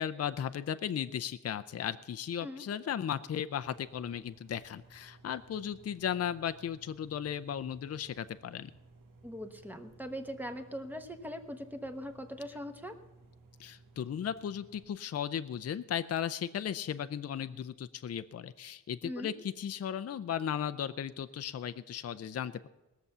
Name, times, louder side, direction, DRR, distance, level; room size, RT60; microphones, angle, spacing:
voice 1, 0.0-8.7 13.6-22.7, left 9 dB, 50° left, 11 dB, 0.5 m, -36 dB
sound 1, 3.7-14.8, right 3 dB, 85° right, 1.4 m, -58 dB
voice 2, 9.2-13.0 19.0-19.3, equal, 5° right, 6 dB, 1.1 m, -41 dB
20.0 x 7.0 x 6.7 m, 1.1 s
wide cardioid pair, 145°, 32 cm